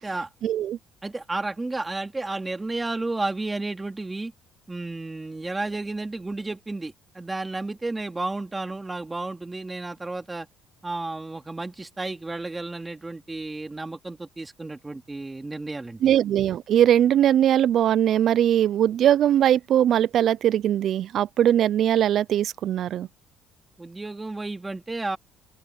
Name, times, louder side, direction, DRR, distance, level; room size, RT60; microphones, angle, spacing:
voice 1, 0.4-0.8 16.0-23.1, right 10 dB, 55° right, 0.4 m, -20 dB
voice 2, 1.0-4.3 4.7-10.5 10.8-16.1 23.8-25.2, right 2 dB, 15° right, 2.8 m, -32 dB
open air
cardioid pair, 110°, 0 cm